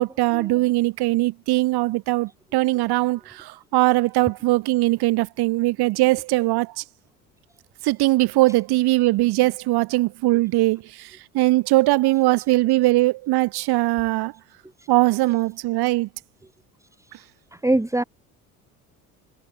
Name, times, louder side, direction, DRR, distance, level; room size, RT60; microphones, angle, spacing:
voice 1, 0.0-6.7 7.8-11.1 11.3-14.3 14.9-16.1, right 19 dB, 55° right, 2.4 m, -21 dB
voice 2, 17.5-18.0, right 2 dB, 5° right, 2.9 m, -23 dB
hypercardioid pair, 65°, 45 cm